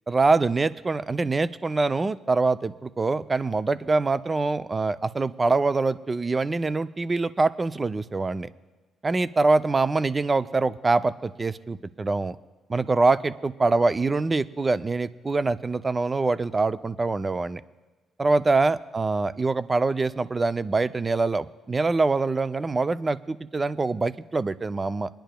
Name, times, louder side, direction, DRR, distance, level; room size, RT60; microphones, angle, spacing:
voice 1, 0.1-8.5 9.0-12.4 12.7-17.6 18.2-25.1, right 3 dB, 25° right, 14 dB, 0.4 m, -24 dB
27.5 x 10.0 x 2.2 m, 1.3 s
cardioid pair, 90°, 0 cm